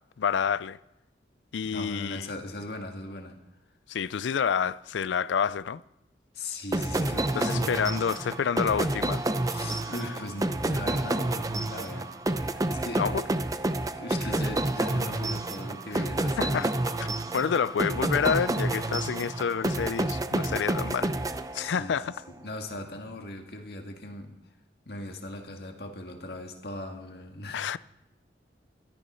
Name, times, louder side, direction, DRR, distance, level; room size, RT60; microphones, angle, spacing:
voice 1, 0.2-0.8 1.5-2.2 3.9-5.8 7.4-9.3 13.0-13.2 15.9-16.0 16.4-16.7 17.0-21.1 21.5-22.1 27.5-27.8, left 7 dB, 90° left, 0.4 m, -28 dB
voice 2, 1.6-3.4 6.3-7.7 9.5-12.2 12.7-13.1 14.0-16.7 21.5-24.4 24.9-27.8, left 1 dB, 60° left, 1.9 m, -39 dB
sound 1, 6.7-22.0, right 2 dB, 20° right, 0.6 m, -29 dB
13.5 x 12.5 x 5.6 m
head